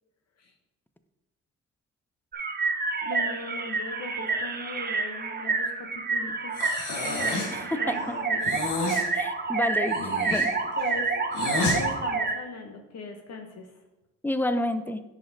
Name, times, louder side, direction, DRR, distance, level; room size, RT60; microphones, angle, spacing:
sound 1, 2.3-12.4, right 4 dB, 30° right, 0.7 m, -28 dB
voice 1, 3.0-6.7 7.0-8.5 10.8-11.1 11.7-13.7, left 3 dB, 60° left, 3 dB, 0.9 m, -39 dB
Breathing, 6.5-7.6 8.4-9.1 9.8-11.8, left 3 dB, 85° left, 1.4 m, -30 dB
voice 2, 9.1-10.0 10.3-10.5 14.2-15.0, left 1 dB, 5° left, 10 dB, 0.4 m, -29 dB
10.0 x 5.1 x 2.7 m, 1.0 s
cardioid pair, 90°, 30 cm